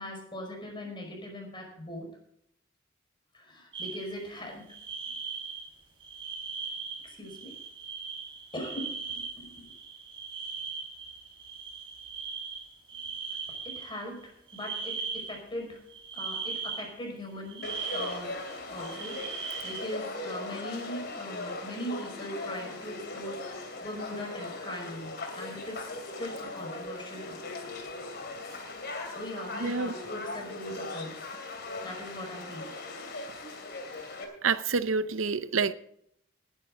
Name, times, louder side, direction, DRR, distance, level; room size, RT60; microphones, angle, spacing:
voice 1, 0.0-2.1 3.3-4.7 5.1-5.2 7.0-7.5 8.5-9.7 13.6-15.8 16.1-17.6 17.9-18.4 18.7-25.9 26.2-27.4 29.1-31.3 31.8-32.7, equal, 25° left, 5.2 m, -40 dB
sound 1, 3.7-4.3 4.7-5.7 6.0-14.0 14.5-15.4 15.9-16.9 17.5-19.9, right 5 dB, 25° right, 4.8 m, -39 dB
Conversation / Crowd, 17.6-34.2, left 2 dB, 55° left, 2.9 m, -39 dB
voice 2, 29.6-29.9 34.4-35.7, right 5 dB, 80° right, 0.7 m, -27 dB
19.0 x 10.5 x 3.8 m
head